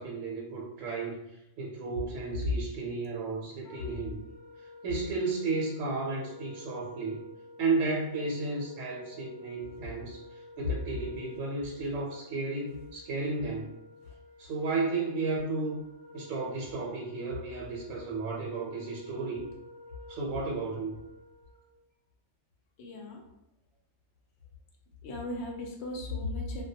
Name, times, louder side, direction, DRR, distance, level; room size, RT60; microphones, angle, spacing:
voice 1, 0.0-4.2 4.8-7.2 7.6-13.7 14.4-15.8 16.1-19.5 20.1-21.0, right 3 dB, 75° right, -3 dB, 0.9 m, -33 dB
Wind instrument woodwind instrument, 3.6-21.7, left 2 dB, 85° left, 1.0 m, -52 dB
voice 2, 9.5-10.0 22.8-23.2 25.0-26.6, left 2 dB, 65° left, 0 dB, 0.7 m, -37 dB
2.2 x 2.1 x 2.7 m, 0.85 s
omnidirectional pair, 1.4 m